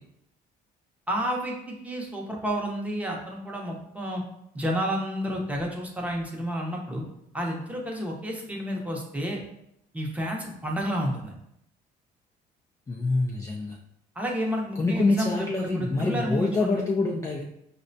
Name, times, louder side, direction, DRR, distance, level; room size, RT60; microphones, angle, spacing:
voice 1, 1.1-4.2 4.5-7.0 7.3-9.4 9.9-11.3 14.2-16.8, equal, 10° right, -1 dB, 0.7 m, -30 dB
voice 2, 12.9-13.8 14.8-17.4, left 3 dB, 20° left, -1 dB, 0.4 m, -26 dB
4.7 x 2.1 x 2.6 m, 0.77 s
cardioid pair, 110°, 17 cm